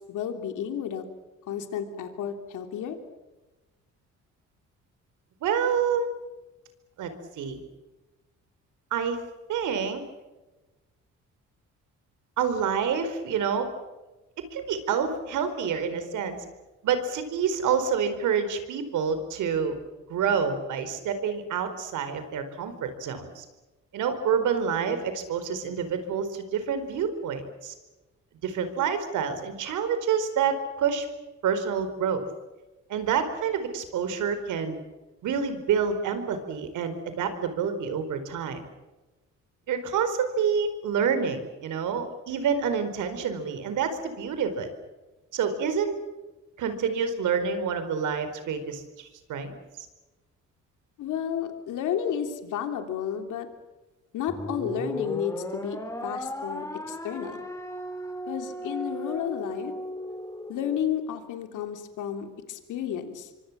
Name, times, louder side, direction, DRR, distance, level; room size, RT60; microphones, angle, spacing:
voice 1, 0.1-1.0 1.5-3.0 51.0-53.5 54.1-55.8 56.0-57.4 58.3-59.7 60.5-63.3, left 9 dB, 85° left, 6 dB, 3.2 m, -32 dB
voice 2, 5.4-6.1 7.0-7.6 8.9-9.2 9.5-10.0 12.4-13.7 14.5-16.4 16.8-19.8 20.1-23.4 23.9-27.7 28.4-31.1 31.4-32.2 32.9-34.8 35.2-38.6 39.7-44.7 45.3-46.0 46.6-49.5, right 6 dB, 80° right, 10 dB, 4.7 m, -28 dB
sound 1, 54.3-60.8, equal, 10° left, 4.0 m, -36 dB
25.5 x 25.0 x 7.5 m, 1.1 s
cardioid pair, 90°, 30 cm